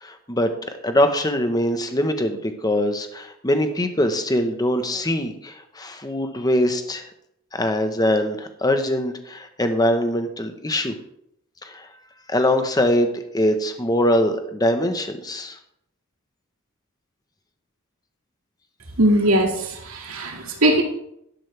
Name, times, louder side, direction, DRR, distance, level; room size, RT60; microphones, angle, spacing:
voice 1, 0.0-0.5 0.8-7.1 7.5-10.9 11.6-11.9 12.3-15.6, left 1 dB, 20° left, 6 dB, 1.1 m, -22 dB
voice 2, 19.0-20.8, right 1 dB, 80° right, 2 dB, 2.2 m, -20 dB
12.0 x 11.5 x 3.4 m, 0.76 s
head